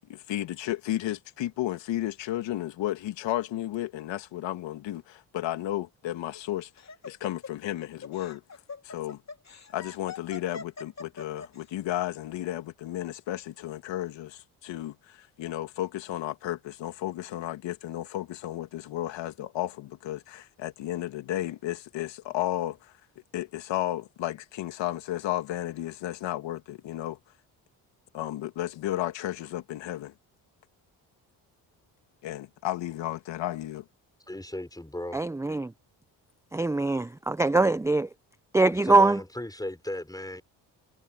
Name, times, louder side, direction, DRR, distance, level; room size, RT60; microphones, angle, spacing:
voice 1, 0.1-6.7 7.0-8.4 8.8-9.2 9.7-22.8 23.3-27.2 28.1-30.1 32.2-33.8, left 14 dB, 80° left, 2.8 m, -33 dB
Laughter, 6.2-11.6, left 5 dB, 35° left, 2.3 m, -42 dB
voice 2, 34.3-35.2 38.6-40.4, left 1 dB, 10° left, 4.7 m, -36 dB
voice 3, 35.1-35.7 36.5-38.1 38.5-39.2, right 3 dB, 5° right, 0.6 m, -23 dB
supercardioid pair, 55°, 44 cm